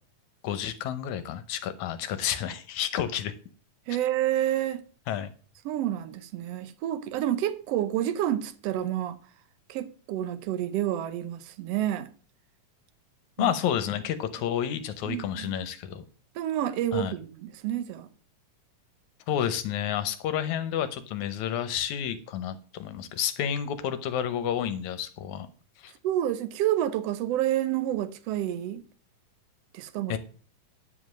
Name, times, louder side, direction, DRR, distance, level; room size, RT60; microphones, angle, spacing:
voice 1, 0.4-3.3 5.1-5.3 13.4-16.0 16.9-17.1 19.3-25.5 25.8-25.9 30.1-30.2, left 10 dB, 75° left, 2.0 m, -30 dB
voice 2, 3.9-4.8 5.6-9.2 9.7-12.1 13.4-13.5 15.1-15.5 16.3-18.1 26.0-28.8 29.7-30.2, right 12 dB, 75° right, 1.5 m, -29 dB
9.9 x 5.2 x 6.3 m
omnidirectional pair, 3.7 m